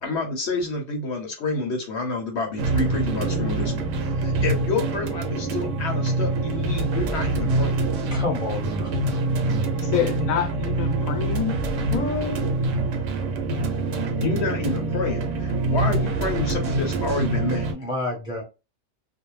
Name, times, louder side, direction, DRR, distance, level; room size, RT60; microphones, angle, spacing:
voice 1, 0.0-7.8 14.2-17.7, left 3 dB, 65° left, 0.8 m, -29 dB
sound 1, 2.6-17.7, right 2 dB, 70° right, 0.9 m, -25 dB
voice 2, 8.1-9.0 17.7-18.4, left 2 dB, 5° right, 0.8 m, -29 dB
voice 3, 9.8-11.6 11.9-12.5, left 8 dB, 85° left, 1.0 m, -27 dB
2.4 x 2.0 x 3.0 m
omnidirectional pair, 1.4 m